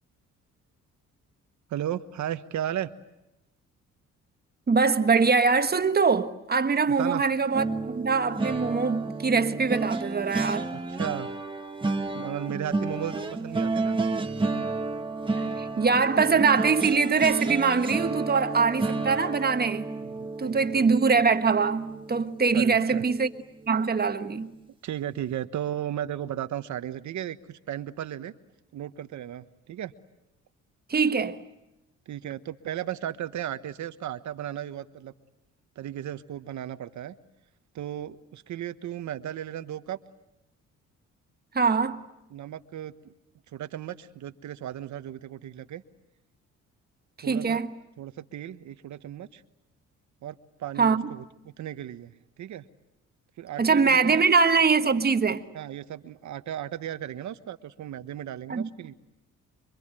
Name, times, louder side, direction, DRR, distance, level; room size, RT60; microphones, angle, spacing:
voice 1, 1.7-2.9 7.0-7.2 10.7-11.3 12.1-14.0 20.0-20.9 22.5-23.0 24.8-28.3 28.7-29.9 32.1-35.1 35.8-37.2 37.7-40.0 42.3-43.1 43.5-45.8 47.2-47.6 48.0-49.4 50.2-52.6 53.4-54.3 55.5-58.9, right 11 dB, 70° right, 1.3 m, -35 dB
voice 2, 4.7-10.7 15.6-19.9 20.4-23.3 23.7-24.5 30.9-31.4 41.5-42.1 47.2-47.8 50.8-51.0 53.6-55.5 58.5-58.7, right 5 dB, 30° right, 1.4 m, -23 dB
sound 1, 7.5-22.7 23.1-23.3 23.6-23.8, right 3 dB, 15° right, 1.8 m, -31 dB
27.0 x 24.0 x 9.0 m
cardioid pair, 90°, 30 cm